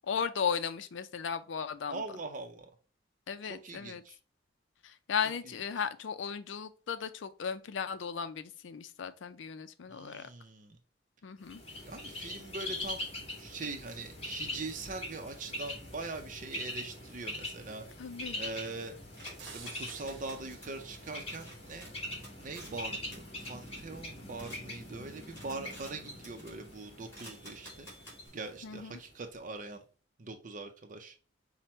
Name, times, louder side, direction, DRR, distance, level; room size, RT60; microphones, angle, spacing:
voice 1, 0.1-2.0 3.3-4.0 4.8-10.3 11.2-11.6 18.0-18.4 28.6-29.0, left 6 dB, 90° left, 0.4 m, -36 dB
voice 2, 1.9-2.7 3.4-4.2 9.9-10.8 11.8-13.1 13.4-17.8 18.4-19.0 19.5-21.9 22.4-27.9 28.3-29.8 30.2-31.1, right 3 dB, 45° right, 0.6 m, -42 dB
Bird, 11.4-29.2, left 1 dB, 30° left, 1.4 m, -43 dB
sound 1, 19.1-24.6 25.0-26.0 26.2-26.7 27.1-28.3, equal, 15° left, 2.6 m, -52 dB
sound 2, 19.4-22.2, right 6 dB, 70° right, 0.8 m, -53 dB
5.9 x 2.1 x 4.2 m
head